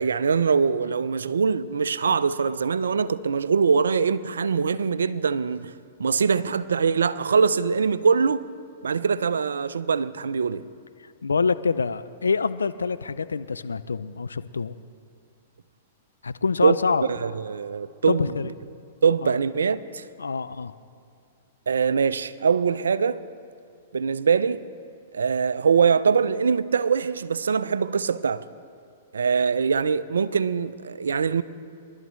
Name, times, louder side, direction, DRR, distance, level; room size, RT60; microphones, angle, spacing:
voice 1, 0.0-5.7 6.0-8.4 8.8-10.7 16.6-16.8 17.2-18.3 19.0-20.1 21.7-23.2 23.9-24.7 25.1-28.5 29.1-31.4, right 6 dB, 80° right, 0.4 m, -23 dB
voice 2, 11.0-14.7 16.2-17.0 18.1-18.5 19.2-19.3 20.2-20.7, left 5 dB, 90° left, 0.4 m, -26 dB
23.0 x 12.0 x 3.1 m
hypercardioid pair, 115°, 0 cm